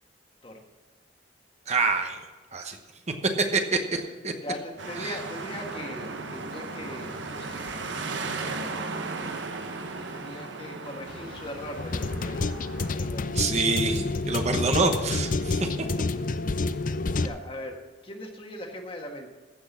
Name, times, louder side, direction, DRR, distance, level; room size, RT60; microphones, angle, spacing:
voice 1, 1.7-2.2 2.5-2.8 3.2-4.3 5.0-5.2 13.3-15.7, right 3 dB, 35° right, 5 dB, 1.0 m, -26 dB
voice 2, 4.4-7.8 10.1-12.5 12.9-13.3 17.1-17.8 18.0-19.3, left 1 dB, 30° left, 3 dB, 1.6 m, -39 dB
sound 1, 4.8-12.9, right 3 dB, 80° right, 1.3 m, -36 dB
sound 2, 11.1-17.3, left 3 dB, 45° left, 0.5 m, -29 dB
15.0 x 6.2 x 7.2 m, 1.3 s
head